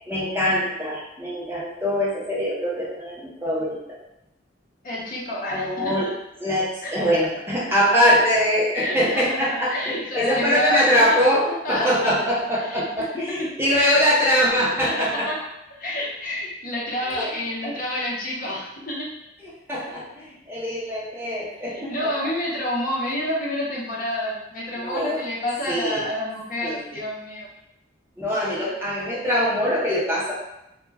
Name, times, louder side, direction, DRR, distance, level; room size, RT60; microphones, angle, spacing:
voice 1, 0.1-4.0 5.5-6.1 6.4-15.3 17.0-17.2 19.4-22.1 24.8-25.2 25.7-26.0 26.6-26.8 28.2-30.3, equal, 10° right, -7 dB, 0.5 m, -23 dB
voice 2, 4.8-5.9 6.8-7.1 7.7-7.8 8.7-9.2 9.7-10.9 11.5-12.2 12.5-13.1 13.7-14.0 15.0-15.3 15.8-19.1 21.7-27.5 28.3-28.7, left 1 dB, 45° left, -5 dB, 0.6 m, -29 dB
2.2 x 2.1 x 3.2 m, 0.87 s
head